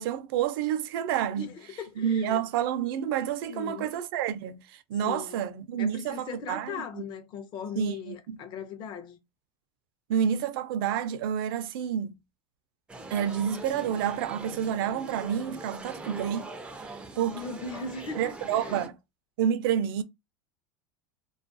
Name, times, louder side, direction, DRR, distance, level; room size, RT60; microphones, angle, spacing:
voice 1, 0.0-1.5 2.0-6.8 7.8-8.4 10.1-12.1 13.1-16.5 17.2-17.4 18.2-19.0 19.4-20.0, right 9 dB, 70° right, 0.4 m, -29 dB
voice 2, 1.3-2.4 3.5-3.9 5.0-5.5 5.8-9.2 17.3-18.8, left 5 dB, 40° left, 0.6 m, -39 dB
sound 1, 12.9-18.9, right 3 dB, 10° right, 0.4 m, -42 dB
2.3 x 2.2 x 2.5 m
supercardioid pair, 130°, 12 cm